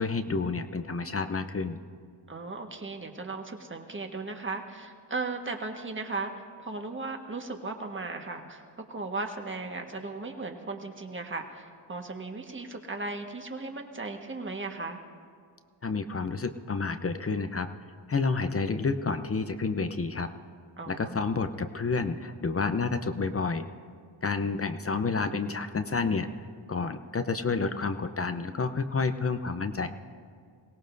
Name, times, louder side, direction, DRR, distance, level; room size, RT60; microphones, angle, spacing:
voice 1, 0.0-1.8 15.8-17.7 18.1-20.3 20.9-23.7 24.2-26.3 26.7-29.9, left 4 dB, 30° left, 9 dB, 0.7 m, -29 dB
voice 2, 2.3-15.0 20.8-21.1, right 3 dB, 25° right, 4 dB, 1.5 m, -36 dB
22.0 x 17.5 x 2.7 m, 2.1 s
cardioid pair, 60°, 45 cm